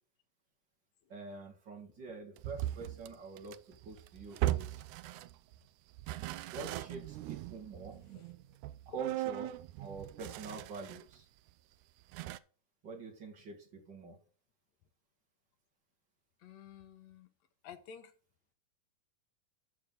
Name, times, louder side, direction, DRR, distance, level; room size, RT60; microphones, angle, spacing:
voice 1, 1.1-4.8 6.5-8.0 8.9-11.3 12.8-14.2, right 4 dB, 40° right, 1 dB, 2.3 m, -46 dB
sound 1, 2.4-5.6 5.9-11.1 11.5-11.6 12.1-12.4, right 15 dB, 80° right, 1.9 m, -39 dB
voice 2, 16.4-17.3 17.6-18.1, left 8 dB, 70° left, 9 dB, 1.9 m, -51 dB
13.5 x 4.9 x 3.9 m, 0.40 s
omnidirectional pair, 3.7 m